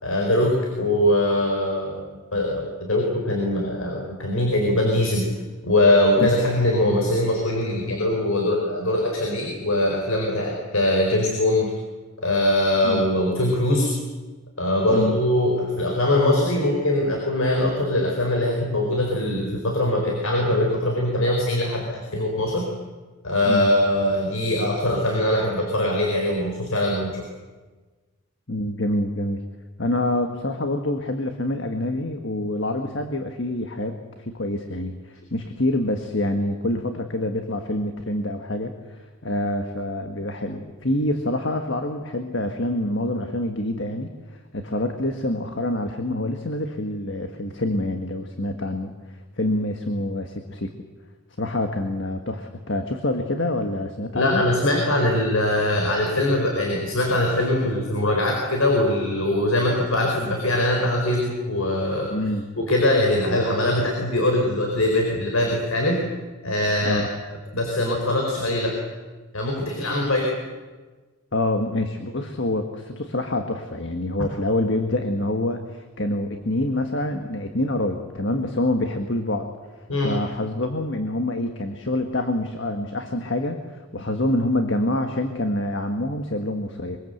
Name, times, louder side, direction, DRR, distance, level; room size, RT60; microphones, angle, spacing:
voice 1, 0.0-2.0 2.3-5.3 5.6-11.7 12.2-13.9 14.6-22.7 23.2-27.2 54.1-62.1 62.6-66.0 66.4-67.0 67.5-68.7 69.3-70.3 79.9-80.1, left 1 dB, 80° left, 1 dB, 4.8 m, -22 dB
voice 2, 28.5-29.4 29.8-48.9 49.4-50.7 51.4-54.4 62.1-62.5 66.8-67.1 71.3-79.5 80.0-87.0, left 1 dB, 55° left, 6 dB, 1.7 m, -26 dB
24.0 x 24.0 x 8.0 m, 1.3 s
head